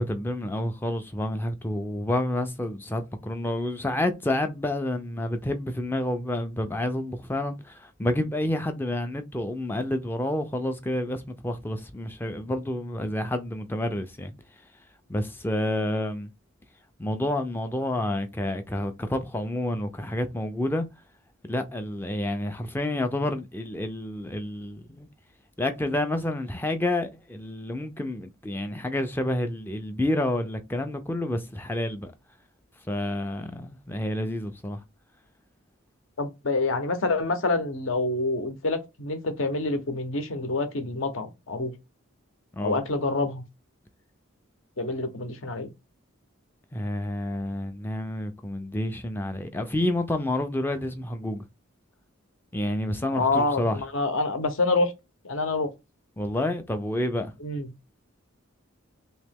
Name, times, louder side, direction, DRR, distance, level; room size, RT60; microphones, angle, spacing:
voice 1, 0.0-14.3 15.1-16.3 17.0-20.9 21.5-25.1 25.6-32.1 32.9-34.8 42.5-42.8 46.7-51.4 52.5-53.8 56.2-57.3, left 1 dB, 10° left, 0.3 m, -29 dB
voice 2, 36.2-41.7 42.6-43.4 44.8-45.7 53.1-54.9 55.2-55.7 57.4-57.7, left 2 dB, 65° left, 0.8 m, -27 dB
3.0 x 2.8 x 3.5 m
head